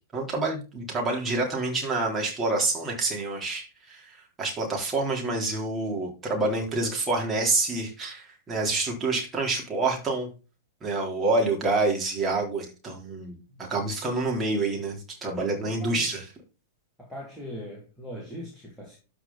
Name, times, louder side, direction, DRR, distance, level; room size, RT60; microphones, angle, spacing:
voice 1, 0.1-10.3 10.8-16.3, right 3 dB, 20° right, 3.8 m, -27 dB
voice 2, 15.6-16.1 17.0-19.0, equal, ahead, 2.8 m, -40 dB
12.5 x 5.1 x 4.1 m
figure-of-eight pair, 100°, 0 cm